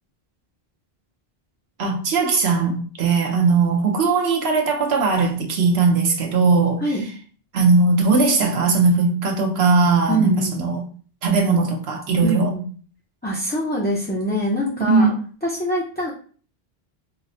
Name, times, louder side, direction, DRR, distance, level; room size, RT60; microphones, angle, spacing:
voice 1, 1.8-6.8 7.5-10.8 11.2-12.5 14.9-15.2, right 4 dB, 80° right, 0.9 m, -19 dB
voice 2, 10.1-10.6 12.2-12.7 13.2-15.1 15.4-16.1, equal, 15° left, 0.3 m, -23 dB
4.0 x 2.0 x 2.6 m
omnidirectional pair, 1.0 m